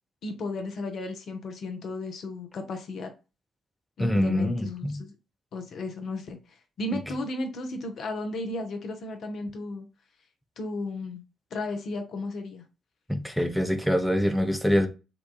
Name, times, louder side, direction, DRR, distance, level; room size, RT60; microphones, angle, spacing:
voice 1, 0.2-3.1 4.0-5.1 5.5-9.9 10.6-11.2 11.5-12.6, left 2 dB, 55° left, 0.6 m, -34 dB
voice 2, 4.0-5.0 6.9-7.0 13.1-14.9, equal, ahead, 0.5 m, -25 dB
2.9 x 2.2 x 2.2 m
figure-of-eight pair, 45°, 0 cm